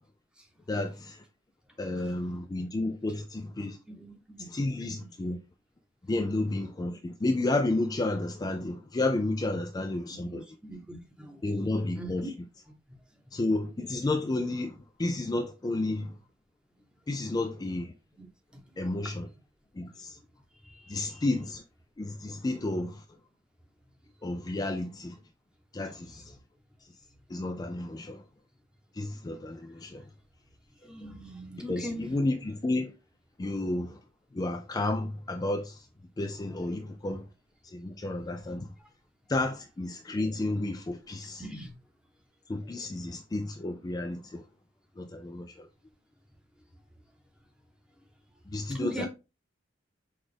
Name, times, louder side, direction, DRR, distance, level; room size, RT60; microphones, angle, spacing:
voice 1, 0.7-1.2 1.8-3.8 4.5-5.4 6.1-10.4 11.4-12.3 13.3-16.2 17.1-17.9 18.8-19.3 19.8-20.2 20.9-21.6 22.0-23.0 24.2-25.2 25.7-26.4 27.3-28.2 28.9-30.0 31.7-32.9 33.4-34.0 34.3-35.9 36.2-37.2 37.6-38.7 39.3-41.4 42.5-44.4 45.0-45.7 48.5-49.1, left 2 dB, 20° left, 0.3 m, -31 dB
voice 2, 2.0-2.3 3.6-4.5 4.8-5.1 6.1-6.2 10.2-11.4 12.0-12.3 12.7-12.8 18.2-18.3 18.5-18.8 19.9-20.0 20.6-21.2 30.8-32.2 41.4-41.7 48.7-49.1, right 1 dB, 5° right, 0.9 m, -42 dB
5.9 x 2.4 x 3.3 m
head